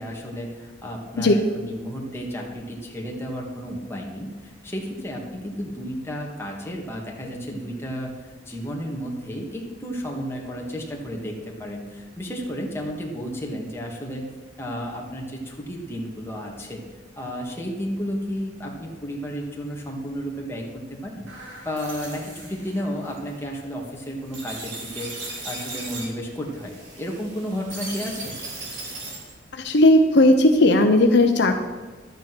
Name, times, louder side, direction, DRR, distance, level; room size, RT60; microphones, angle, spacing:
voice 1, 0.0-8.1 8.5-14.3 14.6-16.8 17.2-28.4, equal, 15° left, -1 dB, 2.1 m, -32 dB
sound 1, 21.3-29.4, right 2 dB, 80° right, 3.6 m, -38 dB
voice 2, 29.5-31.5, left 1 dB, 65° left, 5 dB, 0.9 m, -16 dB
12.0 x 9.1 x 6.2 m, 1.3 s
head